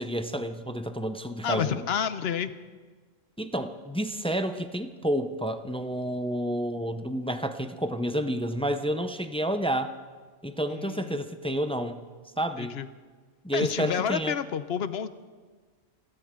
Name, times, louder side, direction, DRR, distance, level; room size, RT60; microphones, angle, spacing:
voice 1, 0.0-1.8 3.4-9.9 10.4-12.0 12.4-12.8 13.4-14.3, equal, 5° left, 8 dB, 0.4 m, -30 dB
voice 2, 1.4-2.5 10.7-11.2 12.6-12.9 13.5-15.1, left 8 dB, 60° left, 12 dB, 0.9 m, -30 dB
30.0 x 12.5 x 3.7 m, 1.5 s
omnidirectional pair, 1.3 m